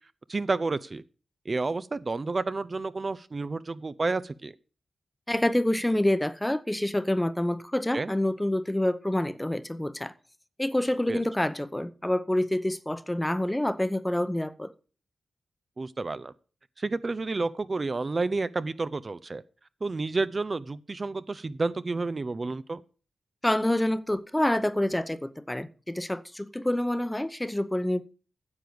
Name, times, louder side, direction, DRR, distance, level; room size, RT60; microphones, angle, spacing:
voice 1, 0.3-1.0 1.5-4.5 7.9-8.1 11.1-11.2 15.8-16.3 16.8-19.4 19.8-22.8, right 3 dB, 40° right, 0.6 m, -30 dB
voice 2, 5.3-10.1 10.6-14.7 23.4-28.0, left 1 dB, 10° left, 0.8 m, -27 dB
9.6 x 7.8 x 6.9 m
cardioid pair, 75°, 0 cm